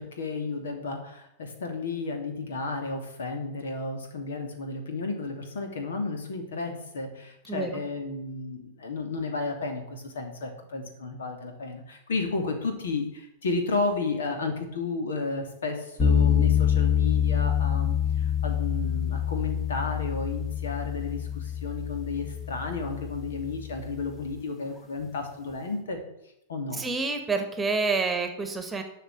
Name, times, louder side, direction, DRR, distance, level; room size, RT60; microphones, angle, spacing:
voice 1, 0.0-26.0 26.5-26.8, left 3 dB, 65° left, 4 dB, 2.8 m, -32 dB
sound 1, 16.0-24.2, left 8 dB, 20° left, 1.8 m, -26 dB
voice 2, 26.7-28.8, right 4 dB, 10° right, 6 dB, 1.8 m, -28 dB
12.5 x 5.8 x 8.6 m, 0.81 s
figure-of-eight pair, 95°, 0 cm